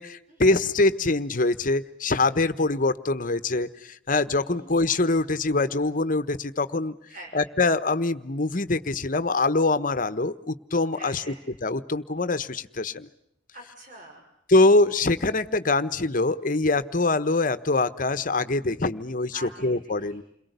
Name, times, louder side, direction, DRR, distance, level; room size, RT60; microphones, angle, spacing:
voice 1, 0.0-6.9 7.3-11.2 11.6-13.1 14.5-19.3 19.6-20.2, left 2 dB, 45° left, 13 dB, 1.2 m, -24 dB
voice 2, 4.3-4.7 7.1-7.3 10.9-11.4 13.5-14.3 19.3-20.2, right 1 dB, 45° right, 1 dB, 6.2 m, -45 dB
29.5 x 22.5 x 8.2 m, 0.74 s
head